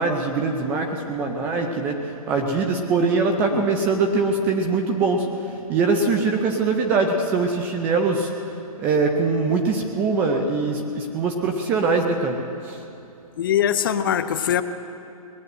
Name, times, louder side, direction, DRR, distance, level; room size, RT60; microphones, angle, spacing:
voice 1, 0.0-2.0 2.3-5.3 5.7-8.3 8.8-12.4 12.6-12.8, right 4 dB, 10° right, 3 dB, 0.4 m, -22 dB
voice 2, 13.4-14.6, left 9 dB, 35° left, 11 dB, 0.6 m, -22 dB
19.5 x 9.4 x 7.7 m, 2.7 s
hypercardioid pair, 165°, 19 cm